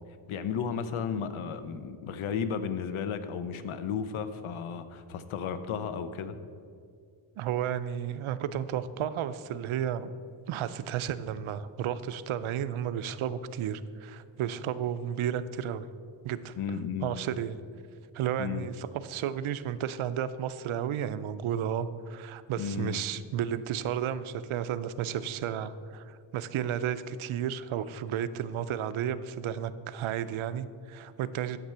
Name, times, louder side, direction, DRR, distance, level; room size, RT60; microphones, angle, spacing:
voice 1, 0.3-6.4 16.6-17.2 18.4-18.7 22.6-23.0, left 7 dB, 90° left, 11 dB, 0.7 m, -34 dB
voice 2, 7.4-10.1 10.5-15.9 16.2-16.6 17.0-17.6 18.1-31.6, right 9 dB, 85° right, 14 dB, 0.6 m, -32 dB
9.3 x 6.8 x 5.6 m, 2.2 s
cardioid pair, 100°, 48 cm